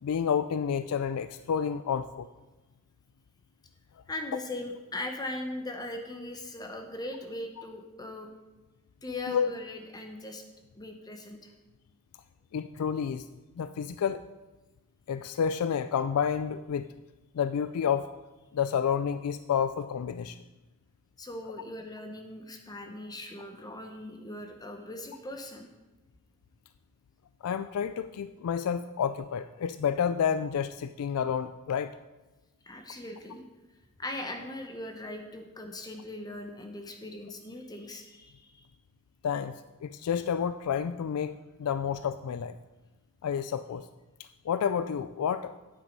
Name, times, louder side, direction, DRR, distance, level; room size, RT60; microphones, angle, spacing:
voice 1, 0.0-2.3 9.3-9.5 12.5-13.3 13.6-14.2 15.1-16.9 17.3-18.1 18.5-20.4 27.4-31.9 39.2-42.6 43.2-43.8 44.5-45.5, left 7 dB, 75° left, 12 dB, 0.3 m, -30 dB
voice 2, 4.1-8.3 9.0-10.4 10.8-11.5 21.2-25.7 32.6-33.4 34.0-38.7, left 2 dB, 20° left, 4 dB, 0.8 m, -39 dB
9.0 x 8.1 x 5.3 m, 1.1 s
head